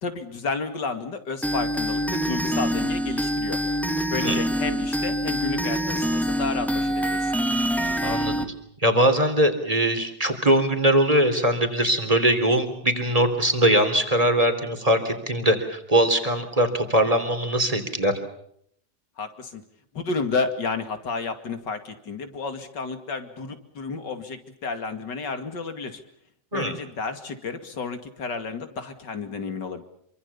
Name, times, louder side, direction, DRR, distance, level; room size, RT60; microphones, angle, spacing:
voice 1, 0.0-3.6 4.1-7.3 19.2-19.6 19.9-26.0 26.5-29.8, left 4 dB, 85° left, 8 dB, 3.1 m, -31 dB
sound 1, 1.4-8.5, equal, ahead, 2.4 m, -25 dB
voice 2, 8.0-8.4 8.8-18.1 26.5-26.8, right 1 dB, 20° right, 8 dB, 3.5 m, -21 dB
27.0 x 24.5 x 7.1 m, 0.69 s
omnidirectional pair, 1.8 m